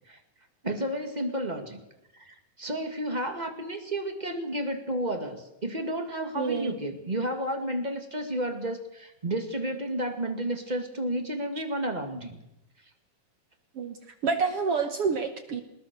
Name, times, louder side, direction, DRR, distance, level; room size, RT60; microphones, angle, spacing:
voice 1, 0.6-1.8 2.1-12.4, right 1 dB, 25° right, 5 dB, 0.8 m, -32 dB
voice 2, 6.3-6.7 13.7-14.0 14.2-15.6, right 5 dB, 70° right, 7 dB, 1.4 m, -28 dB
21.5 x 20.5 x 6.9 m, 0.86 s
omnidirectional pair, 4.5 m